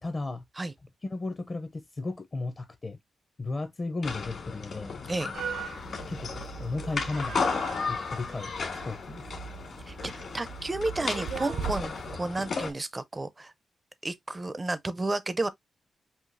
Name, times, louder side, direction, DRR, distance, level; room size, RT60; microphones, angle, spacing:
voice 1, 0.0-0.4 1.1-3.0 3.4-5.0 6.1-7.4 7.9-8.5 8.8-9.3, left 3 dB, 25° left, 0.6 m, -34 dB
sound 1, 4.0-12.7, left 4 dB, 50° left, 1.5 m, -35 dB
sound 2, 5.3-12.2, right 7 dB, 85° right, 0.6 m, -39 dB
voice 2, 9.9-11.9 12.2-13.5 14.0-15.5, right 2 dB, 15° right, 0.4 m, -32 dB
5.6 x 2.7 x 2.5 m
wide cardioid pair, 165°, 0 cm